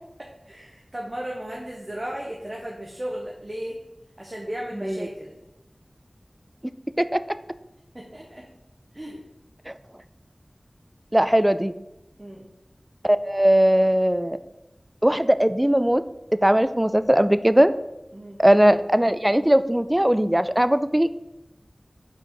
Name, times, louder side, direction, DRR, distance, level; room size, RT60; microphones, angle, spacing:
voice 1, 0.5-3.8 4.2-5.3 7.9-8.5 8.9-9.2 12.2-12.5 18.1-18.4, right 1 dB, 35° right, -2 dB, 1.0 m, -35 dB
voice 2, 4.7-5.1 7.0-7.2 9.7-9.8 11.1-11.7 13.0-14.4 15.0-16.0 16.4-17.7 18.4-21.2, right 1 dB, 15° right, 13 dB, 0.3 m, -19 dB
5.0 x 4.6 x 4.7 m, 0.96 s
wide cardioid pair, 45°, 0 cm